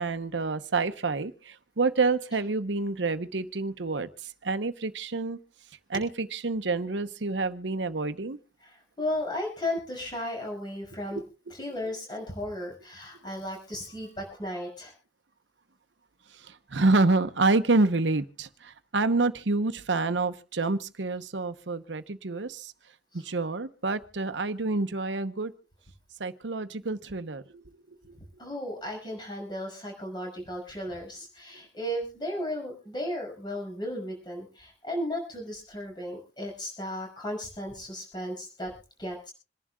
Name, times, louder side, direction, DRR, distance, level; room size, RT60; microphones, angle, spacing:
voice 1, 0.0-5.4 5.9-8.4 11.1-11.2 16.3-22.7 23.1-25.5 26.2-27.6 27.9-28.0, right 3 dB, 85° right, 10 dB, 0.9 m, -28 dB
voice 2, 9.0-11.2 11.6-14.9 28.4-38.7 39.0-39.3, left 1 dB, 25° left, 0 dB, 6.2 m, -35 dB
27.0 x 11.0 x 2.3 m, 0.33 s
head